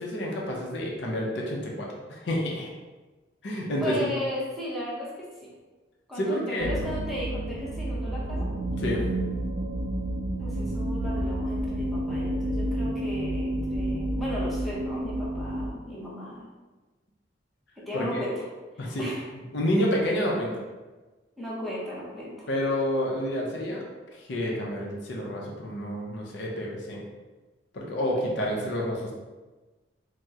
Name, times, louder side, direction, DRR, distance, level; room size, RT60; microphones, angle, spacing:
voice 1, 0.0-2.7 3.4-4.0 6.2-6.7 8.8-9.0 17.9-18.3 18.8-19.0 19.5-20.5 22.5-23.8 24.2-27.0 27.7-29.1, equal, 65° left, -2 dB, 0.6 m, -29 dB
voice 2, 3.8-5.5 6.1-8.5 10.4-16.5 17.8-18.5 18.8-19.2 21.4-22.5, left 1 dB, ahead, -7 dB, 0.6 m, -36 dB
sound 1, 6.6-15.7, right 1 dB, 50° right, 0.3 m, -30 dB
2.8 x 2.0 x 3.5 m, 1.2 s
head